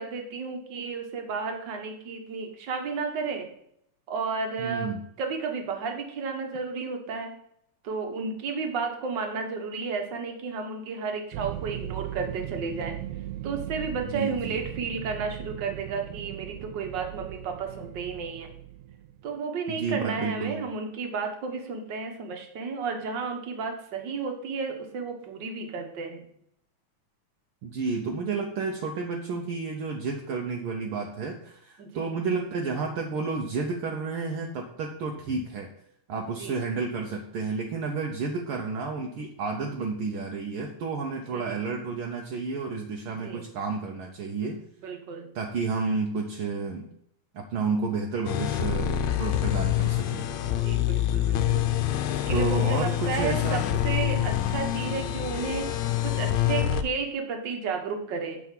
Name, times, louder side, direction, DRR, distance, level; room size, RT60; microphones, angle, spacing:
voice 1, 0.0-3.5 4.1-4.9 5.2-7.3 7.8-12.9 13.4-18.5 19.2-26.3 31.8-32.1 36.4-36.6 41.3-41.6 43.1-43.4 44.8-45.3 50.4-51.7 52.3-58.4, right 5 dB, 50° right, 4 dB, 1.5 m, -32 dB
voice 2, 4.6-5.0 14.0-14.6 19.7-20.6 27.6-35.7 36.1-44.6 45.3-46.9 47.3-50.3 52.3-53.6 54.2-54.3, right 4 dB, 70° right, 2 dB, 1.3 m, -31 dB
sound 1, 11.3-19.2, right 13 dB, 85° right, 1.9 m, -38 dB
sound 2, 48.3-56.8, left 12 dB, 75° left, 1.9 m, -26 dB
8.0 x 4.9 x 7.3 m, 0.72 s
omnidirectional pair, 3.3 m